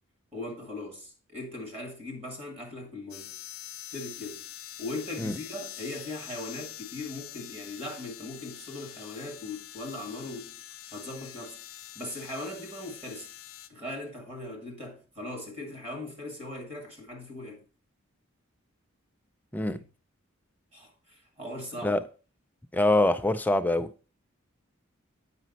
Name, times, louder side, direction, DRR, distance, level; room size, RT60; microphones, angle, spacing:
voice 1, 0.3-3.4 3.9-4.5 4.8-10.6 10.9-11.6 12.0-13.3 13.7-17.6 20.7-22.0, left 2 dB, 30° right, 2.0 m, -39 dB
sound 1, 3.1-13.7, left 12 dB, 70° left, 0.6 m, -45 dB
voice 2, 22.7-23.9, left 2 dB, 10° left, 0.3 m, -24 dB
8.3 x 5.1 x 4.0 m
head